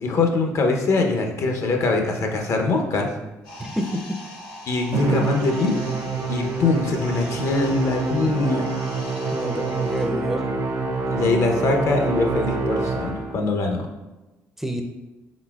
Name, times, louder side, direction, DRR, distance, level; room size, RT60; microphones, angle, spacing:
voice 1, 0.0-3.1 4.7-5.8 6.3-8.7 11.1-13.8, left 3 dB, 55° left, 3 dB, 0.7 m, -22 dB
sound 1, 3.4-10.1, left 1 dB, 85° left, 1.0 m, -41 dB
voice 2, 3.6-4.2 9.3-10.5 14.6-14.8, equal, 5° right, 3 dB, 0.5 m, -28 dB
Musical instrument, 4.9-13.5, right 4 dB, 55° right, 0.6 m, -26 dB
4.0 x 4.0 x 2.3 m, 1.1 s
supercardioid pair, 80°, 6 cm